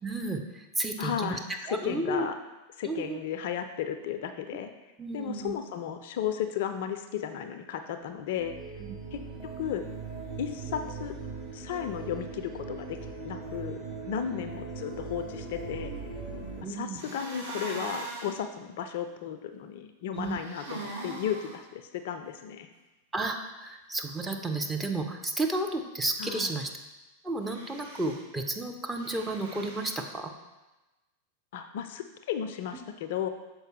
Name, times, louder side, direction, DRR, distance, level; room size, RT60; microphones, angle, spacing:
voice 1, 0.0-1.4 1.7-2.3 2.8-3.2 5.0-5.5 8.8-9.0 14.2-14.4 16.6-17.0 20.1-20.4 23.1-26.7 27.2-30.3, right 2 dB, 10° right, 3 dB, 0.6 m, -32 dB
voice 2, 1.0-2.4 2.8-4.7 5.1-8.5 9.1-9.2 9.6-9.8 10.4-11.1 11.5-13.0 13.2-15.9 16.7-22.7 26.2-26.5 31.5-33.3, left 9 dB, 55° left, 8 dB, 0.4 m, -34 dB
sound 1, 8.0-16.6, right 4 dB, 35° right, 1.6 m, -40 dB
sound 2, 17.0-18.4 20.2-21.6 27.4-28.2 29.0-30.0, right 2 dB, 65° right, 1.3 m, -41 dB
6.5 x 4.6 x 3.1 m, 1.1 s
figure-of-eight pair, 90°, 0 cm